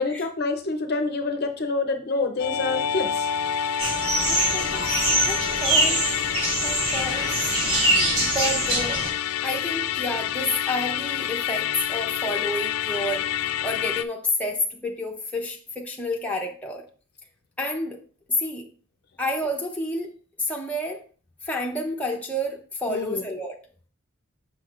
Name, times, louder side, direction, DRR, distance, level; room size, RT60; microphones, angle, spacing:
voice 1, 0.0-3.3 22.9-23.2, left 3 dB, 45° left, 0.6 m, -27 dB
Musical instrument, 2.4-14.0, left 10 dB, 85° left, 0.3 m, -28 dB
sound 1, 3.8-9.1, right 2 dB, 85° right, 3.2 m, -24 dB
voice 2, 4.3-4.9 5.3-6.0 6.6-7.4 7.8-9.0 9.4-16.8 17.6-18.0 18.3-18.7 19.2-20.1 20.4-21.0 21.4-23.5, left 1 dB, 5° left, 0.7 m, -30 dB
6.2 x 6.2 x 2.5 m
head